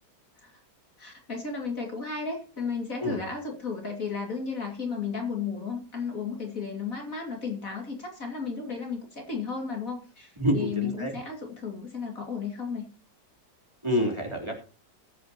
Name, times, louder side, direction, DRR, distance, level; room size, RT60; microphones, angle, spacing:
voice 1, 1.0-12.9, left 5 dB, 50° left, 2 dB, 2.7 m, -34 dB
voice 2, 10.4-11.2 13.8-14.6, equal, 15° right, -1 dB, 3.4 m, -27 dB
21.0 x 8.2 x 2.9 m, 0.37 s
omnidirectional pair, 1.9 m